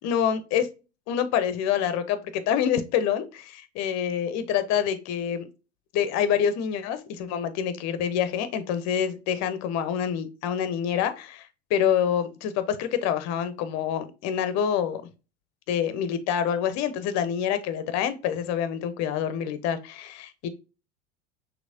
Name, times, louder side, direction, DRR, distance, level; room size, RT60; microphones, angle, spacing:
voice 1, 0.0-0.7 1.1-5.5 5.9-15.0 15.7-20.5, left 8 dB, 50° left, 0.9 m, -26 dB
6.2 x 2.9 x 2.7 m
hypercardioid pair, 85°, 35 cm